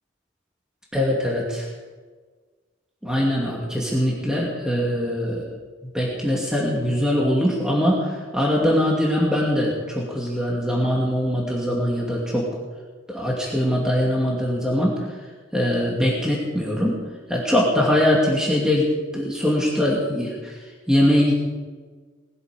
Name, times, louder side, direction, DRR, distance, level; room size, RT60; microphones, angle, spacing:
voice 1, 0.9-1.7 3.0-12.5 13.1-15.0 15.5-17.0 17.3-18.9 19.1-20.6 20.9-21.3, left 1 dB, 5° right, -4 dB, 2.5 m, -22 dB
20.0 x 13.5 x 5.2 m, 1.4 s
head